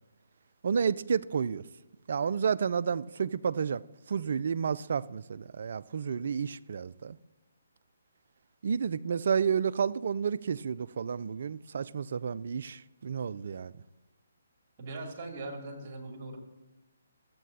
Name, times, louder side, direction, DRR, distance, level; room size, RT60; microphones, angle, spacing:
voice 1, 0.6-1.6 2.1-3.8 4.1-7.2 8.6-13.7, right 6 dB, 55° right, 0.3 m, -31 dB
voice 2, 14.8-16.4, right 2 dB, 35° right, 2.7 m, -40 dB
14.5 x 8.4 x 2.7 m
figure-of-eight pair, 140°, 0 cm